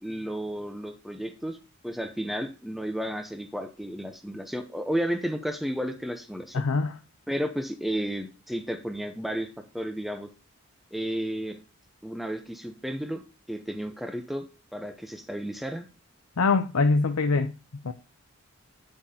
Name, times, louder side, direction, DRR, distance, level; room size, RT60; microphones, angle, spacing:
voice 1, 0.0-1.6 1.8-6.6 7.3-10.3 10.9-11.6 12.0-13.2 13.5-14.5 14.7-15.9, equal, ahead, 0.7 m, -32 dB
voice 2, 6.5-7.0 16.4-17.5 17.8-17.9, left 4 dB, 90° left, 0.7 m, -23 dB
9.6 x 8.8 x 2.8 m
head